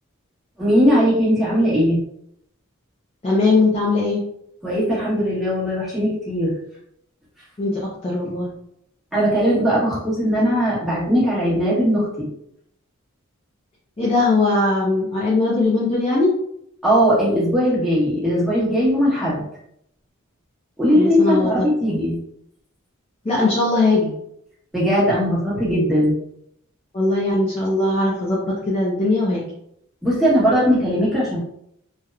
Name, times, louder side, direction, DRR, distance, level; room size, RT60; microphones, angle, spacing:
voice 1, 0.6-2.0 4.6-6.6 9.1-12.3 16.8-19.5 20.8-22.2 24.7-26.1 30.0-31.4, equal, ahead, -9 dB, 0.9 m, -19 dB
voice 2, 3.2-4.2 7.6-8.5 14.0-16.3 20.9-21.7 23.2-24.1 26.9-29.5, left 2 dB, 30° left, -6 dB, 0.4 m, -20 dB
2.8 x 2.0 x 2.3 m, 0.73 s
head